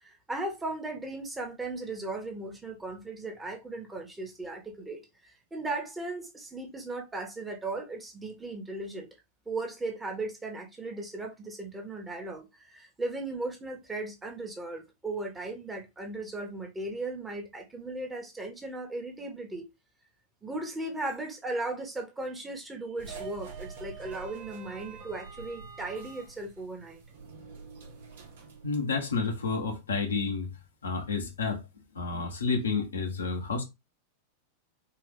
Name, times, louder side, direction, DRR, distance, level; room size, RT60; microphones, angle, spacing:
voice 1, 0.0-9.1 9.4-19.6 20.4-27.0, right 2 dB, 10° right, 1.4 m, -37 dB
sound 1, 23.0-29.5, right 5 dB, 55° right, 1.2 m, -46 dB
voice 2, 28.6-30.5 30.8-31.6 31.9-33.6, left 4 dB, 70° left, 1.4 m, -30 dB
4.5 x 2.9 x 3.7 m
figure-of-eight pair, 90°, 0 cm